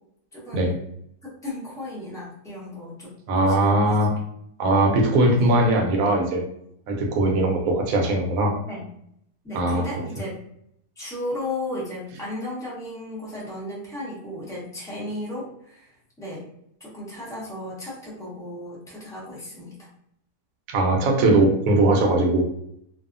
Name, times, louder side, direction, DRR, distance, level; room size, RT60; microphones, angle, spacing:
voice 1, 0.3-0.7 1.4-3.9 5.3-5.5 8.6-8.8 9.4-10.4 11.0-15.9 16.2-16.4 16.8-19.9, left 1 dB, 5° left, -6 dB, 0.4 m, -35 dB
voice 2, 3.3-4.1 4.6-6.4 6.9-8.5 9.5-9.8 20.7-22.5, right 2 dB, 70° right, 1 dB, 1.0 m, -20 dB
2.6 x 2.3 x 2.4 m, 0.72 s
omnidirectional pair, 1.7 m